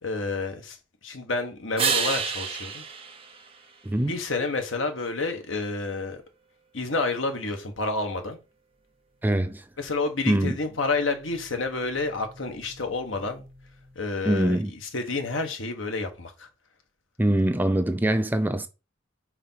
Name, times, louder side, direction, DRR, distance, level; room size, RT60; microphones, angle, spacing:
voice 1, 0.0-0.8 1.0-2.8 4.0-6.2 6.7-8.4 9.8-13.5 13.9-16.5, left 3 dB, 85° left, 1.4 m, -29 dB
sound 1, 1.8-4.3 10.1-14.1, right 6 dB, 30° right, 1.1 m, -33 dB
voice 2, 3.8-4.2 9.2-9.6 10.3-10.6 14.2-14.7 17.2-18.7, right 1 dB, 10° right, 0.5 m, -23 dB
4.9 x 4.2 x 5.7 m
head